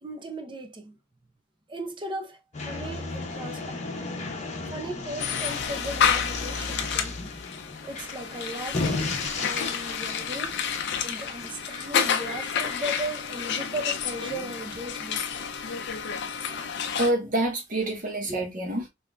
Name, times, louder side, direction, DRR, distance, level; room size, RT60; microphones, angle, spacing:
voice 1, 0.0-1.0 1.7-4.1 4.7-7.4 7.8-10.5 11.0-15.2 16.7-16.8 18.3-18.5, right 1 dB, 25° right, 0.6 m, -37 dB
sound 1, 2.5-11.7, left 3 dB, 35° left, 0.8 m, -34 dB
sound 2, 5.2-17.1, left 7 dB, 55° left, 0.4 m, -30 dB
voice 2, 16.9-18.9, right 1 dB, 40° right, 1.0 m, -27 dB
3.6 x 3.2 x 2.2 m
head